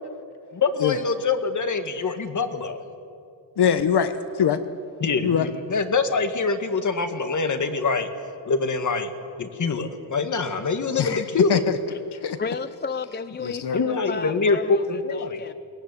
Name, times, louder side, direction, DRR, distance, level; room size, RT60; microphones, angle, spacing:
voice 1, 0.5-2.8 5.0-8.1 8.5-9.1 9.4-11.6 13.7-15.4, left 4 dB, 40° left, 8 dB, 1.9 m, -24 dB
voice 2, 3.6-4.6 5.2-5.5 11.0-11.2 11.5-11.6 12.1-12.4 13.4-13.8, left 8 dB, 55° left, 11 dB, 1.1 m, -22 dB
voice 3, 11.9-15.5, left 5 dB, 20° left, 13 dB, 0.5 m, -33 dB
22.5 x 19.5 x 9.8 m, 2.5 s
cardioid pair, 130°, 47 cm